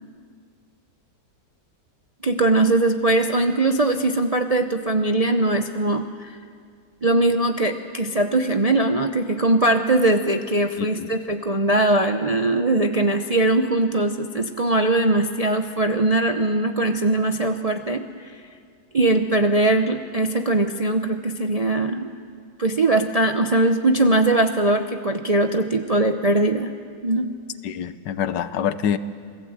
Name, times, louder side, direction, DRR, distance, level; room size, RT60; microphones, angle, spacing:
voice 1, 2.2-6.3 7.0-18.3 18.9-22.1 22.6-26.7 27.0-27.3, right 2 dB, 45° right, 6 dB, 0.5 m, -21 dB
voice 2, 10.8-11.1 27.6-29.0, left 9 dB, 90° left, 13 dB, 1.5 m, -26 dB
27.5 x 18.5 x 8.0 m, 2.2 s
omnidirectional pair, 1.8 m